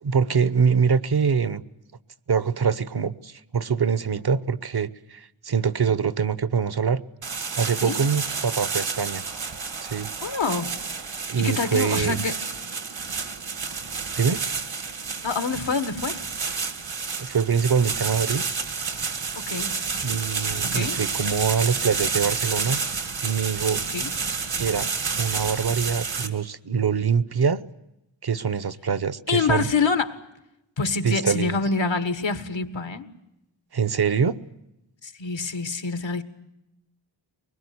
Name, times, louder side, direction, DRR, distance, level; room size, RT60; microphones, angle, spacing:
voice 1, 0.0-1.6 2.3-7.0 7.6-9.2 9.8-10.1 11.3-12.2 14.2-14.4 17.2-18.4 20.0-22.8 23.2-23.8 24.6-24.9 25.2-27.6 28.2-29.6 31.0-31.6 33.7-34.4, right 6 dB, 55° right, 1.0 m, -24 dB
sound 1, 7.2-26.3, right 5 dB, 80° right, 2.3 m, -30 dB
voice 2, 10.2-10.8 11.4-12.4 15.2-16.2 19.4-19.8 20.6-21.0 23.9-24.1 29.3-30.2 30.8-33.1 35.0-36.2, left 4 dB, 80° left, 1.8 m, -26 dB
23.5 x 21.0 x 9.7 m
wide cardioid pair, 60°, 45 cm